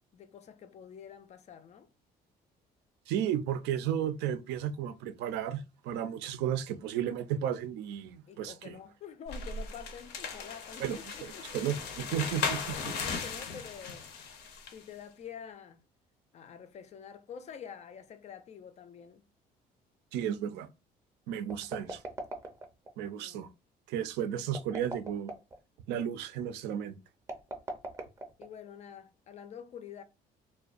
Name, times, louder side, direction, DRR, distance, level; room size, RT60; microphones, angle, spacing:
voice 1, 0.1-1.9 8.3-11.5 12.7-14.2 14.7-15.8 16.3-19.3 23.2-23.5 28.4-30.0, left 7 dB, 40° left, 0.4 m, -47 dB
voice 2, 3.1-8.8 10.8-11.0 11.5-12.8 20.1-20.7 21.3-22.0 23.0-23.5 23.9-25.3 25.9-27.0, right 9 dB, 85° right, 0.4 m, -33 dB
sound 1, 9.3-14.8, left 5 dB, 80° left, 0.6 m, -37 dB
sound 2, 21.5-22.9 24.4-25.6 27.2-28.7, right 1 dB, 20° right, 0.5 m, -40 dB
2.5 x 2.1 x 2.4 m
cardioid pair, 110°, 17 cm